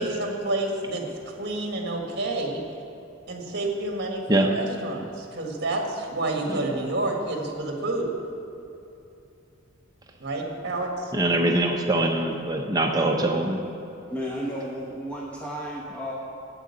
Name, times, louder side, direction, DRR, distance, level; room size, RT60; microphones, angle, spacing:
voice 1, 0.0-2.6 3.3-8.1 10.2-11.1, right 2 dB, 55° right, 1 dB, 1.7 m, -29 dB
voice 2, 11.1-13.6, right 1 dB, 20° right, 2 dB, 0.7 m, -23 dB
voice 3, 14.1-16.1, equal, 5° left, -4 dB, 0.9 m, -33 dB
9.0 x 7.8 x 8.5 m, 2.7 s
head